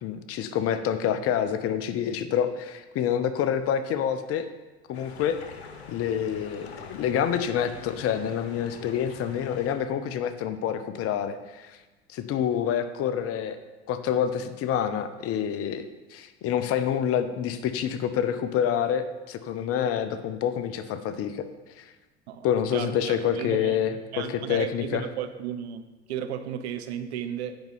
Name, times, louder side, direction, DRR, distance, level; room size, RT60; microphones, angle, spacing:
voice 1, 0.0-4.5 4.9-5.4 5.9-11.8 12.1-13.6 13.9-15.8 16.1-21.5 21.8-21.9 22.4-25.0, left 9 dB, 45° left, 11 dB, 0.8 m, -27 dB
sound 1, 4.9-9.7, left 5 dB, 80° left, 1.0 m, -45 dB
voice 2, 22.7-23.8 24.1-27.6, right 9 dB, 75° right, 9 dB, 0.8 m, -34 dB
9.0 x 5.4 x 5.5 m, 1.2 s
hypercardioid pair, 75°, 33 cm